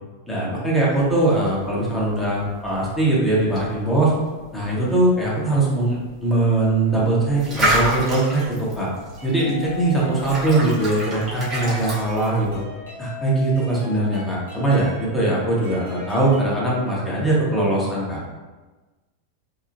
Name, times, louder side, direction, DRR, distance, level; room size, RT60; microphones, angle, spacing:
voice 1, 0.3-4.1 4.5-8.9 9.2-12.6 13.0-18.2, right 2 dB, 5° left, -6 dB, 0.8 m, -21 dB
sound 1, 0.9-12.6, right 1 dB, 20° right, 0.9 m, -30 dB
sound 2, 9.2-16.6, left 3 dB, 70° right, 1.0 m, -38 dB
2.7 x 2.1 x 2.7 m, 1.2 s
figure-of-eight pair, 90°, 0 cm